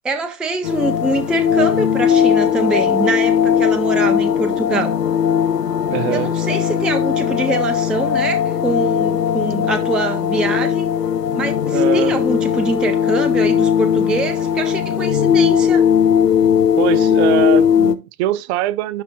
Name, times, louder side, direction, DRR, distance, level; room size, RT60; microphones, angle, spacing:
voice 1, 0.0-5.0 6.1-10.9 11.3-15.8, right 2 dB, ahead, 0.4 m, -24 dB
sound 1, 0.6-18.0, left 8 dB, 85° left, 0.9 m, -18 dB
voice 2, 5.8-6.4 11.7-12.2 16.8-19.0, right 15 dB, 45° right, 0.7 m, -22 dB
11.0 x 3.9 x 3.8 m
figure-of-eight pair, 95°, 48 cm